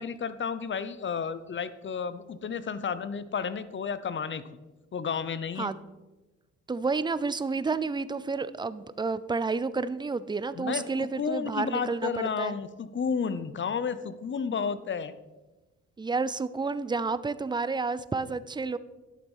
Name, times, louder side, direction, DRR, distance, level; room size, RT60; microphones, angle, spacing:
voice 1, 0.0-4.4 4.9-5.7 10.5-15.1, left 6 dB, 40° left, 14 dB, 0.7 m, -32 dB
voice 2, 6.7-12.5 16.0-18.8, right 4 dB, 15° right, 15 dB, 0.5 m, -30 dB
11.5 x 7.2 x 5.5 m, 1.1 s
cardioid pair, 90°, 30 cm